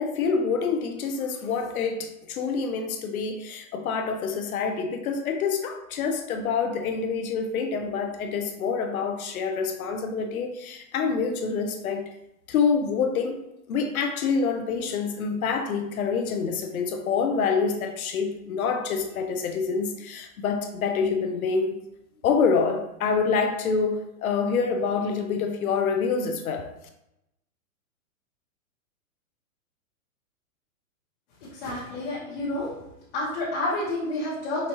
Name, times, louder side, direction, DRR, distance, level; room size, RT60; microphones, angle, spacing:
voice 1, 0.0-12.1 12.5-13.4 13.7-21.8 22.2-26.7, left 5 dB, 75° left, 5 dB, 0.7 m, -26 dB
voice 2, 31.4-32.7 33.1-34.7, left 1 dB, 40° left, -8 dB, 1.2 m, -29 dB
5.1 x 2.6 x 2.9 m, 0.85 s
hypercardioid pair, 170°, 43 cm